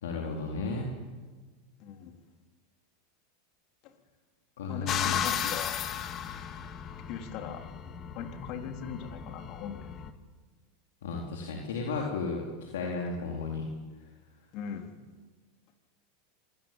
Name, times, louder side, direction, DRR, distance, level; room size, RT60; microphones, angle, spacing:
voice 1, 0.0-1.0 4.6-5.2 11.0-12.5 12.7-13.7, left 4 dB, 80° left, -1 dB, 4.0 m, -33 dB
voice 2, 1.8-2.2 3.8-4.0 4.7-5.8 7.1-7.6 8.1-10.0 14.5-14.9, left 7 dB, 55° left, 5 dB, 3.7 m, -40 dB
sound 1, 4.9-10.1, left 9 dB, 40° left, 2.1 m, -35 dB
26.0 x 18.5 x 9.2 m, 1.4 s
hypercardioid pair, 100°, 0 cm